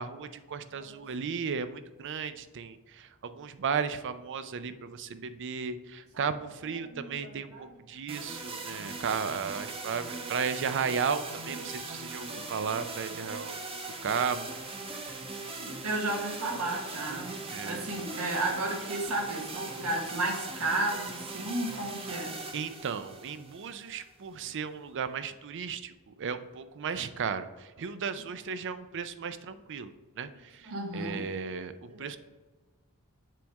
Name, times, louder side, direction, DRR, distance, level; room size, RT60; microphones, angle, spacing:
voice 1, 0.0-7.5 7.9-13.6 14.0-14.6 17.5-17.9 22.5-32.2, right 6 dB, 55° right, 11 dB, 0.5 m, -35 dB
voice 2, 6.9-7.7 11.6-11.7 15.6-22.3 30.6-31.2 31.9-32.2, right 2 dB, 80° right, 1 dB, 1.4 m, -33 dB
sound 1, 8.1-24.1, right 3 dB, 25° right, 0.9 m, -40 dB
7.5 x 3.5 x 5.2 m, 1.2 s
head